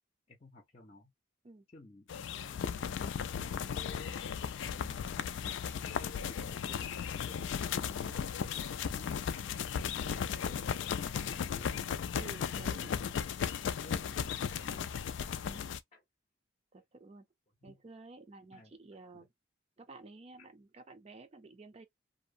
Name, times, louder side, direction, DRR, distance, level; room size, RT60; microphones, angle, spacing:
voice 1, 0.3-1.1 1.7-3.2 3.5-5.4 8.8-11.8 12.9-13.0 13.6-14.9 15.9-16.0 17.6-17.8 18.5-18.7 19.1-19.3, left 2 dB, 30° left, 0.6 m, -56 dB
sound 1, 2.1-15.8, left 7 dB, 75° left, 0.3 m, -36 dB
voice 2, 12.2-12.9 15.4-15.7 16.7-17.2 17.6-19.3 19.8-21.8, right 3 dB, 35° right, 0.5 m, -52 dB
2.7 x 2.0 x 2.5 m
head